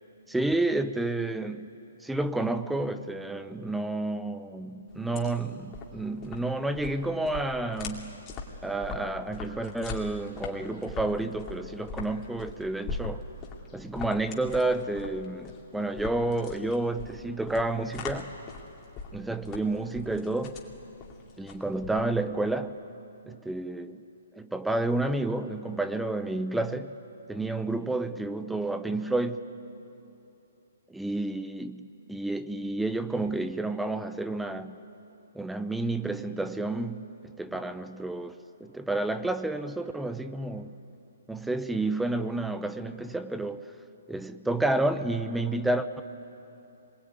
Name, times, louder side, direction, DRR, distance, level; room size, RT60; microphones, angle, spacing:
voice 1, 0.3-1.7 2.0-8.2 8.6-13.2 13.7-18.3 19.1-20.6 21.4-22.8 23.3-24.0 24.3-27.0 27.3-29.4 30.9-34.8 35.3-37.1 37.4-38.4 38.6-40.7 41.3-43.7 44.1-46.0, right 2 dB, 5° right, 11 dB, 0.6 m, -30 dB
sound 1, 4.9-22.4, left 4 dB, 25° left, 2.7 m, -41 dB
26.0 x 21.5 x 9.5 m, 3.0 s
hypercardioid pair, 155°, 0 cm